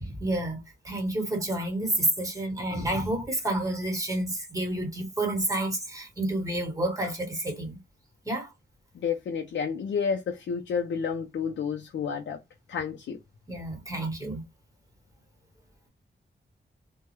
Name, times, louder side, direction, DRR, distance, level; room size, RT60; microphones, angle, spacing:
voice 1, 0.0-7.8 8.2-8.5 13.5-14.4, right 1 dB, 20° right, 1.1 m, -29 dB
voice 2, 8.9-12.4 12.7-13.2, left 6 dB, 85° left, 0.4 m, -30 dB
2.2 x 2.1 x 2.9 m
wide cardioid pair, 80°, 19 cm